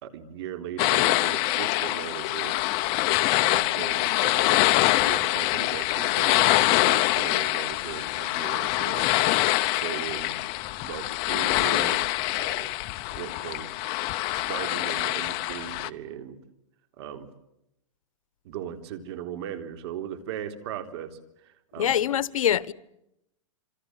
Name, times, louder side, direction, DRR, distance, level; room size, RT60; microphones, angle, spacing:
voice 1, 0.0-2.6 3.4-4.5 5.0-9.1 9.7-10.4 10.8-12.8 13.2-13.7 14.3-16.4 17.0-17.3 18.4-21.9, right 9 dB, 50° right, 3.6 m, -38 dB
sound 1, 0.8-15.9, left 18 dB, 35° left, 0.9 m, -25 dB
voice 2, 21.8-22.7, left 10 dB, 80° left, 1.2 m, -24 dB
27.5 x 25.5 x 7.8 m
hypercardioid pair, 150°, 17 cm